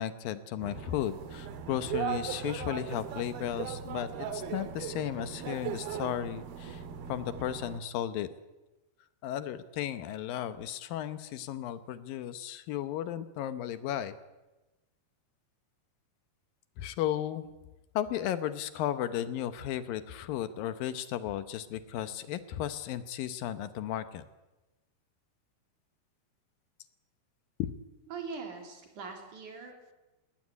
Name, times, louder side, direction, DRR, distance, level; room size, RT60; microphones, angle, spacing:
voice 1, 0.0-6.8 7.1-8.3 9.2-14.2 16.8-17.5 18.0-24.2 27.6-27.7, left 11 dB, 75° left, 12 dB, 2.6 m, -34 dB
sound 1, 0.6-7.8, right 8 dB, 90° right, 3.5 m, -38 dB
voice 2, 28.1-29.9, right 5 dB, 55° right, 3 dB, 4.8 m, -42 dB
20.0 x 18.0 x 9.8 m, 1.1 s
omnidirectional pair, 4.3 m